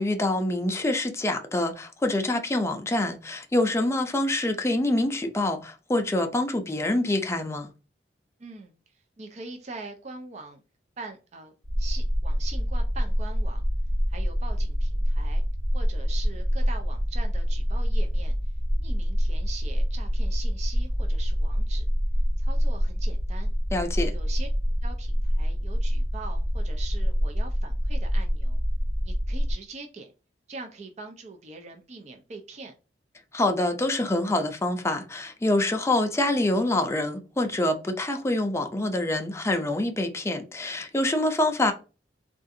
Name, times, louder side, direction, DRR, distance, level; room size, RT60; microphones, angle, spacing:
voice 1, 0.0-7.7 23.7-24.1 33.3-41.7, left 1 dB, 15° left, 0.5 m, -26 dB
voice 2, 8.4-10.6 11.0-13.7 14.1-15.4 15.7-18.3 18.8-21.9 22.4-23.5 24.1-24.5 24.8-28.6 29.0-30.1 30.5-32.7, right 3 dB, 40° right, 0.5 m, -43 dB
sound 1, 11.6-29.5, equal, 85° right, 1.3 m, -26 dB
3.6 x 2.4 x 2.6 m
head